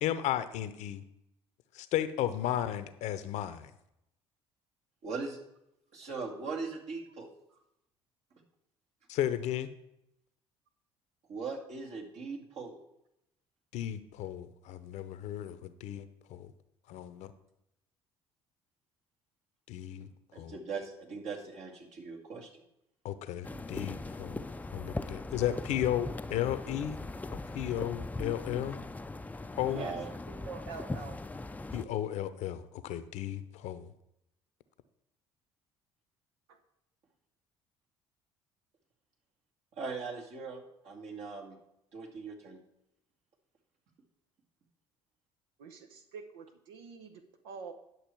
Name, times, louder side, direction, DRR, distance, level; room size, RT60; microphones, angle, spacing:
voice 1, 0.0-1.0 1.7-3.7 9.1-9.7 13.7-16.5 16.9-17.3 19.7-20.1 20.4-20.5 23.0-24.4 24.7-27.0 27.5-28.8 29.6-29.9 31.7-33.9, left 11 dB, 65° left, 13 dB, 0.8 m, -34 dB
voice 2, 5.0-5.4 5.9-7.3 11.3-12.8 20.3-22.5 29.7-30.1 39.8-41.6 41.9-42.6, right 4 dB, 60° right, 0 dB, 2.3 m, -40 dB
sound 1, 23.4-31.9, left 2 dB, 10° left, 0.5 m, -40 dB
voice 3, 29.7-30.0 30.3-31.2 36.5-36.6 45.6-47.7, right 5 dB, 85° right, 6 dB, 0.9 m, -46 dB
10.5 x 6.5 x 4.6 m, 0.82 s
hypercardioid pair, 60°, 13 cm